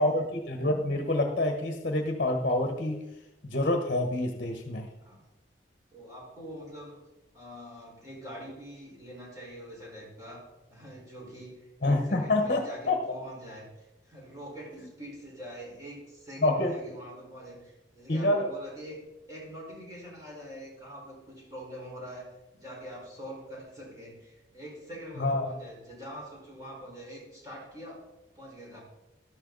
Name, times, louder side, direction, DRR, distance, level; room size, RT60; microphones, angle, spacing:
voice 1, 0.0-3.0 3.4-4.9 11.8-13.1 16.4-17.0 18.1-18.5 25.2-25.5, left 1 dB, 45° left, 4 dB, 1.2 m, -27 dB
voice 2, 5.9-7.0 7.3-28.0 28.3-28.8, equal, 20° right, -4 dB, 4.7 m, -44 dB
13.0 x 12.0 x 4.0 m, 0.98 s
head